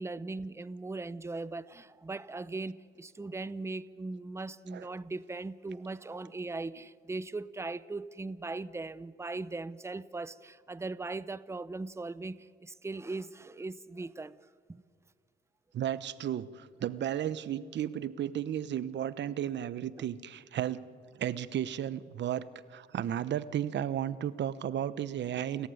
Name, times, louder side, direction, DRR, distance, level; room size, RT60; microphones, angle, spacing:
voice 1, 0.0-14.4 14.7-14.8, right 3 dB, 15° right, 0.7 m, -39 dB
voice 2, 15.7-20.8 21.2-22.4 22.7-25.7, right 10 dB, 65° right, 1.0 m, -34 dB
30.0 x 14.5 x 9.6 m
cardioid pair, 90°, 20 cm